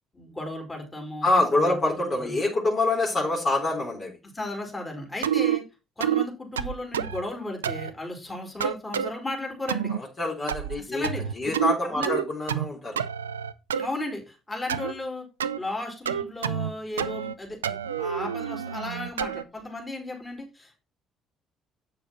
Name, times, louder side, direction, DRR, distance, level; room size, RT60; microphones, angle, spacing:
voice 1, 0.1-2.0 2.2-2.3 4.3-5.6 6.0-9.9 10.8-11.2 11.9-12.2 13.8-15.3 15.6-20.8, left 2 dB, 20° left, 1 dB, 4.3 m, -35 dB
voice 2, 1.2-4.2 9.9-11.1 11.3-13.0, left 2 dB, 45° left, -2 dB, 3.8 m, -26 dB
sound 1, 5.2-5.6 6.0-6.3 6.6-7.2 7.6-7.9 8.6-9.1 9.7-10.0 10.5-10.8 11.0-11.8 12.0-12.7 13.0-13.9 14.7-14.9 15.4-15.6 16.1-16.7 17.0-17.3 17.6-19.4, right 9 dB, 85° right, 0.4 m, -28 dB
8.3 x 6.8 x 4.2 m, 0.28 s
hypercardioid pair, 50°, 0 cm